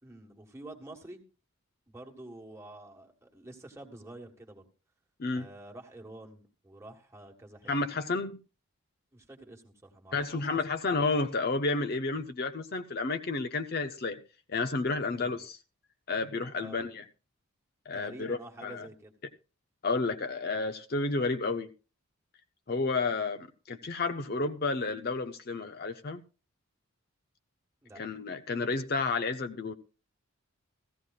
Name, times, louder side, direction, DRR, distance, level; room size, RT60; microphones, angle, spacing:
voice 1, 0.0-1.2 1.9-4.7 5.3-7.7 9.1-10.6 15.1-15.4 16.6-16.9 17.9-19.1 27.8-28.0, right 1 dB, 10° right, 1.5 m, -48 dB
voice 2, 7.7-8.4 10.1-14.2 14.5-15.6 16.1-17.0 17.9-18.8 19.8-21.7 22.7-26.2 28.0-29.7, left 3 dB, 45° left, 0.6 m, -31 dB
15.5 x 14.5 x 2.4 m
head